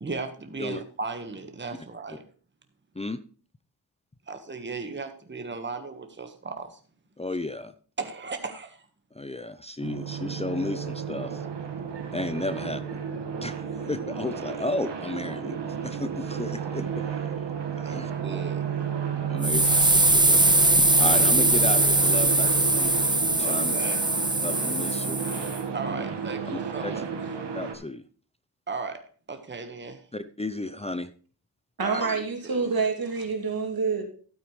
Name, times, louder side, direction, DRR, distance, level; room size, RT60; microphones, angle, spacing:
voice 1, 0.0-2.3 4.3-6.8 8.0-8.9 17.8-18.6 23.4-24.0 25.7-27.1 28.7-30.1 31.8-32.7, right 4 dB, 25° right, 7 dB, 1.4 m, -36 dB
voice 2, 7.2-7.7 9.1-11.5 12.1-13.0 13.4-17.2 17.8-18.1 19.3-20.7 21.0-23.7 24.4-25.2 25.9-26.0 26.8-27.0 27.5-28.0 30.1-31.1 31.9-32.1, left 2 dB, 15° left, 12 dB, 0.6 m, -33 dB
sound 1, 9.8-27.7, right 6 dB, 85° right, 1.7 m, -32 dB
sound 2, 19.4-25.6, right 2 dB, 10° right, 0.9 m, -21 dB
voice 3, 31.8-34.0, right 4 dB, 60° right, 4 dB, 2.7 m, -27 dB
13.0 x 8.5 x 3.2 m, 0.41 s
cardioid pair, 60°, 41 cm